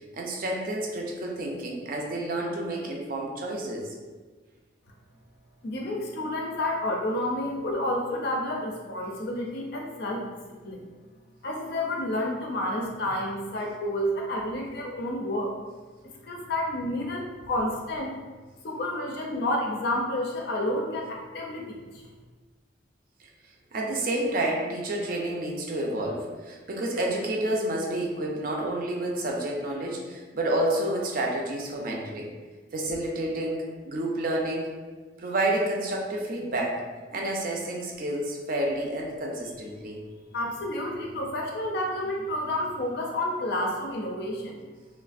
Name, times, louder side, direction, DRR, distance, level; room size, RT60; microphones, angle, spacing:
voice 1, 0.1-3.8 23.7-32.3 32.7-34.7 35.2-36.8 37.1-40.0, right 1 dB, 50° right, -1 dB, 0.5 m, -29 dB
voice 2, 5.6-10.4 10.6-10.8 11.4-15.5 16.2-18.2 18.6-22.0 40.3-44.6, left 1 dB, 55° left, -1 dB, 0.4 m, -30 dB
3.1 x 2.4 x 2.4 m, 1.4 s
head